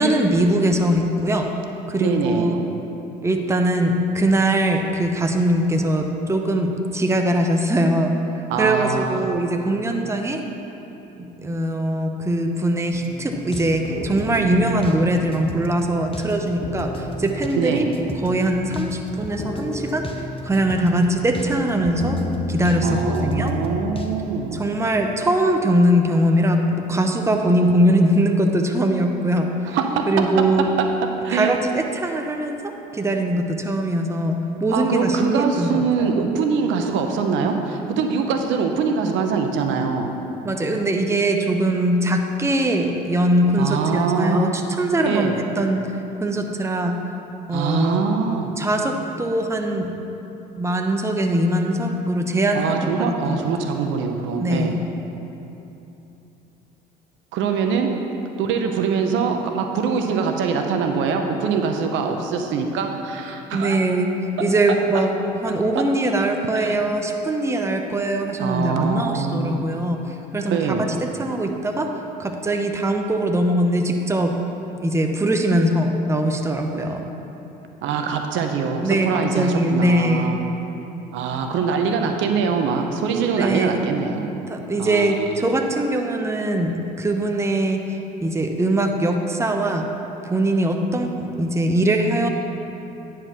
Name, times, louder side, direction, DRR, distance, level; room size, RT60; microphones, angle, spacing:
voice 1, 0.0-1.5 1.9-2.6 3.2-8.1 8.6-10.4 11.4-17.8 18.2-22.2 22.5-23.5 24.5-29.8 30.1-30.7 31.3-36.1 40.4-45.8 46.2-46.9 47.5-48.0 48.6-49.9 50.6-53.4 54.4-54.8 63.5-64.1 64.4-65.1 65.4-70.7 71.2-71.9 72.2-74.3 74.8-77.0 78.8-80.4 83.3-83.8 84.5-87.8 88.2-89.9 90.2-92.3, right 1 dB, 15° right, 4 dB, 0.8 m, -21 dB
voice 2, 2.0-2.6 8.5-9.4 17.6-17.9 22.8-24.6 29.6-30.1 31.2-31.5 34.7-40.1 43.6-44.5 45.1-45.3 47.5-48.5 52.5-54.8 57.3-57.9 58.4-63.8 64.4-64.5 64.9-65.1 65.7-65.8 66.5-66.8 68.4-69.6 70.5-70.8 77.8-80.4 81.1-84.3 84.8-85.4, right 5 dB, 65° right, 4 dB, 0.8 m, -23 dB
sound 1, 12.9-24.1, left 1 dB, 25° left, 0.9 m, -31 dB
9.9 x 4.7 x 6.0 m, 3.0 s
hypercardioid pair, 70°, 21 cm